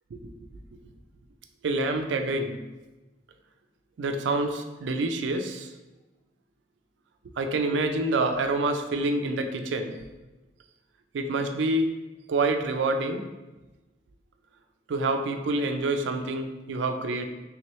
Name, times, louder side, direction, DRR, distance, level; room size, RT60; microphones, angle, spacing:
voice 1, 1.6-2.6 4.0-5.7 7.4-10.0 11.1-11.9 12.3-13.3 14.9-17.3, right 2 dB, 80° right, 6 dB, 0.4 m, -27 dB
3.4 x 2.9 x 3.0 m, 1.1 s
head